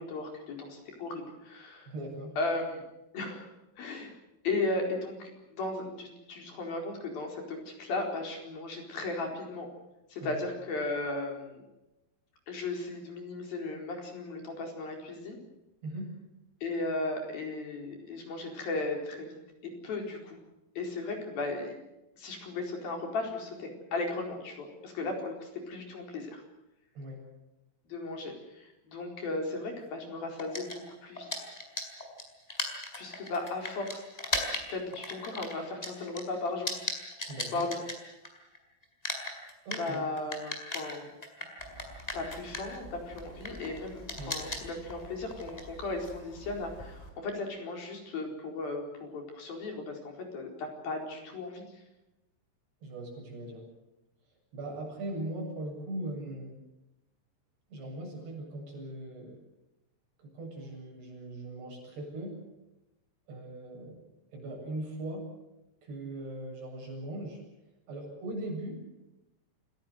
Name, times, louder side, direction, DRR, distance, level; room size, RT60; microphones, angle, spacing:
voice 1, 0.0-1.9 2.4-2.8 3.1-3.5 3.8-4.1 4.4-9.7 10.1-11.6 12.5-15.4 16.6-19.4 19.8-20.4 20.8-21.7 22.2-26.4 27.9-31.5 33.0-34.1 34.7-36.8 37.5-37.8 39.8-41.1 42.1-44.0 44.3-51.8, left 2 dB, 60° left, 2 dB, 6.1 m, -36 dB
voice 2, 1.9-2.4 10.2-10.4 15.8-16.1 27.0-27.2 37.3-37.6 39.7-40.0 44.2-44.4 52.8-53.6 54.5-56.5 57.7-59.4 60.2-62.4 63.3-64.0 64.3-65.3 65.8-67.4 67.9-68.8, right 1 dB, 75° right, 0 dB, 9.8 m, -39 dB
sound 1, 30.4-38.6 38.8-47.1, left 1 dB, 10° left, 4.3 m, -38 dB
28.5 x 17.0 x 8.0 m, 0.95 s
omnidirectional pair, 4.9 m